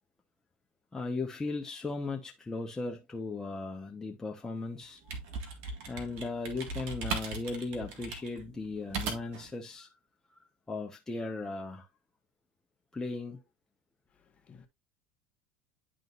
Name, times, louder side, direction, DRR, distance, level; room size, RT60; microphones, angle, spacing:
voice 1, 0.9-5.0 5.9-9.9 10.4-11.9 12.9-13.4, left 3 dB, 15° left, 1.1 m, -37 dB
sound 1, 4.8-9.5, right 4 dB, 60° right, 1.8 m, -38 dB
voice 2, 14.1-14.7, left 6 dB, 30° left, 1.4 m, -57 dB
10.5 x 3.9 x 2.5 m
hypercardioid pair, 85°, 4 cm